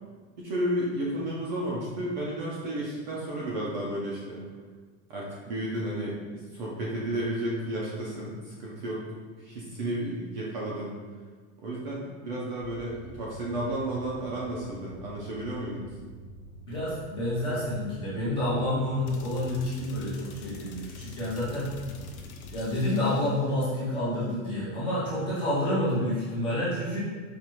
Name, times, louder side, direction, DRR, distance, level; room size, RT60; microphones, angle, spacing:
voice 1, 0.4-4.4 5.1-9.0 9.4-10.9 11.6-16.0, right 1 dB, 35° right, -5 dB, 0.4 m, -32 dB
sound 1, 12.6-19.9, right 1 dB, 65° right, 0.8 m, -47 dB
voice 2, 16.6-21.7 22.5-27.0, left 1 dB, 10° left, -10 dB, 0.6 m, -29 dB
sound 2, 19.1-23.5, left 3 dB, 85° left, 0.7 m, -44 dB
4.8 x 2.5 x 2.9 m, 1.5 s
supercardioid pair, 180°, 41 cm